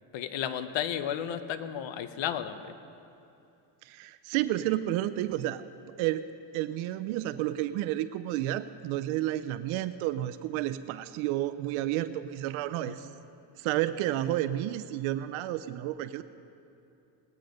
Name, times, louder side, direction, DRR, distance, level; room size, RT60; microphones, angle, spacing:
voice 1, 0.1-2.6 12.8-13.0, left 10 dB, 65° left, 11 dB, 1.0 m, -33 dB
voice 2, 3.8-5.6 6.0-6.2 6.5-13.1 13.6-16.2, right 14 dB, 85° right, 12 dB, 0.6 m, -31 dB
19.5 x 9.7 x 5.2 m, 2.7 s
cardioid pair, 110°, 48 cm